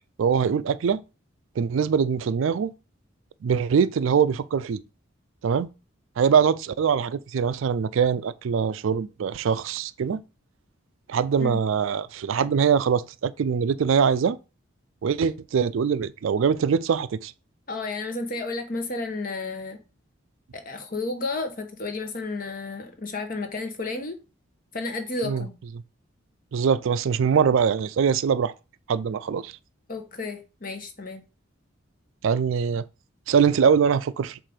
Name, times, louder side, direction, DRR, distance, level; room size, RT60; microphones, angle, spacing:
voice 1, 0.2-1.0 1.6-2.7 3.4-4.8 5.4-5.7 6.2-10.2 11.1-14.4 15.0-17.3 25.2-25.4 26.5-28.5 28.9-29.5 32.2-32.8 33.3-34.4, right 6 dB, 75° right, 0.3 m, -23 dB
voice 2, 17.7-19.8 20.5-24.2 24.7-25.6 29.9-31.2, left 3 dB, 40° left, 1.0 m, -32 dB
7.4 x 2.6 x 5.0 m
head